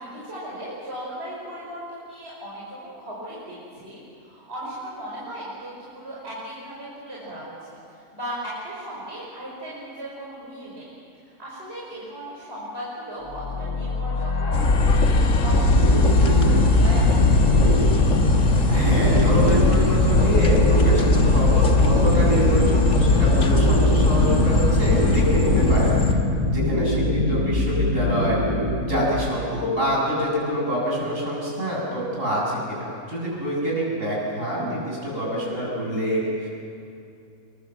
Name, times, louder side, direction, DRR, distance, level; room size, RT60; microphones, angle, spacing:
voice 1, 0.0-7.5 7.9-10.9 11.2-14.6 15.0-17.5 33.3-33.4 33.6-33.7, right 1 dB, 40° right, -7 dB, 5.7 m, -37 dB
sound 1, 13.2-26.3, left 3 dB, 35° left, 0.7 m, -28 dB
sound 2, 14.5-26.1, left 2 dB, 55° left, 2.1 m, -19 dB
sound 3, 15.4-29.2, left 1 dB, 25° right, 6.8 m, -24 dB
voice 2, 18.7-26.2 26.5-28.4 28.8-36.5, equal, 55° right, -4 dB, 8.1 m, -26 dB
27.5 x 22.5 x 7.6 m, 2.5 s
omnidirectional pair, 1.6 m